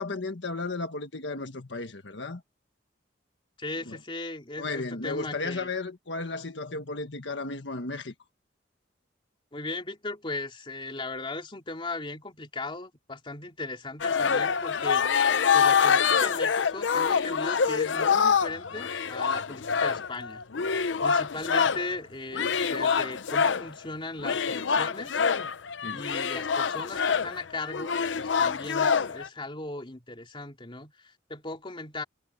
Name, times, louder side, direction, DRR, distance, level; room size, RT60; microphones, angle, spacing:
voice 1, 0.0-2.4 3.9-4.0 4.6-8.1 25.8-26.0, left 3 dB, 75° left, 1.5 m, -34 dB
voice 2, 3.6-5.7 9.5-20.4 21.0-25.2 25.9-32.0, left 2 dB, 30° left, 2.9 m, -38 dB
sound 1, 14.0-21.9 22.3-23.7 24.2-29.3, left 6 dB, 90° left, 0.7 m, -25 dB
head